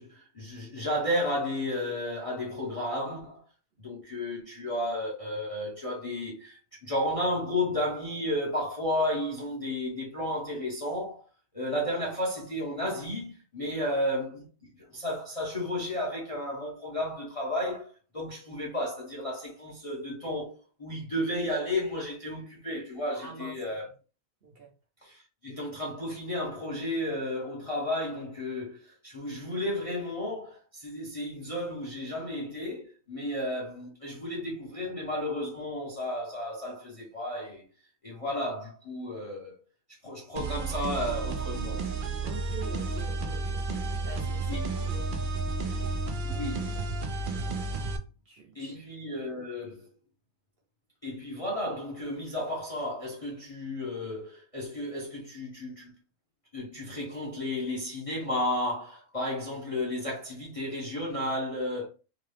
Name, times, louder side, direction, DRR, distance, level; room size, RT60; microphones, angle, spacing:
voice 1, 0.0-3.4 3.8-11.2 11.5-14.5 14.7-23.9 25.0-37.7 38.0-39.5 40.0-41.9 44.5-44.7 46.2-46.7 48.5-49.9 51.0-55.9 56.5-61.9, left 1 dB, 35° left, 0.6 m, -33 dB
voice 2, 23.2-23.7 24.4-24.7 42.2-43.6 44.0-45.1 48.3-48.8, right 4 dB, 50° right, 0.9 m, -45 dB
sound 1, 40.4-48.0, right 3 dB, 90° right, 0.4 m, -32 dB
2.8 x 2.3 x 3.2 m
omnidirectional pair, 1.5 m